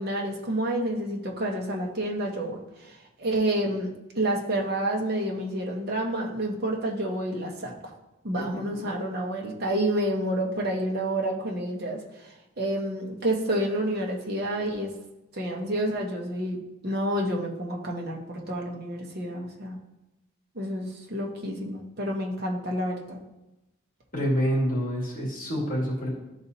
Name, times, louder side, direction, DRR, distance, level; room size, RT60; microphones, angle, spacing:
voice 1, 0.0-3.9 4.1-7.7 8.2-12.0 12.6-14.9 15.3-19.8 20.5-23.2, right 1 dB, 50° right, 0 dB, 1.0 m, -29 dB
voice 2, 24.1-26.1, equal, 45° left, -5 dB, 2.4 m, -27 dB
12.0 x 4.0 x 2.8 m, 0.98 s
head